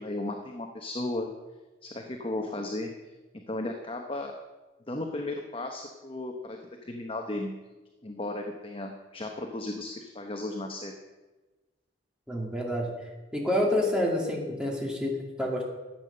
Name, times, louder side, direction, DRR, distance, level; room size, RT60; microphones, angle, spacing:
voice 1, 0.0-1.3 1.8-2.9 3.3-4.3 4.9-7.5 8.0-10.9, left 2 dB, 30° left, 3 dB, 0.9 m, -35 dB
voice 2, 12.3-12.9 13.3-15.6, left 1 dB, 5° right, -1 dB, 2.2 m, -28 dB
13.5 x 8.4 x 6.6 m, 1.2 s
head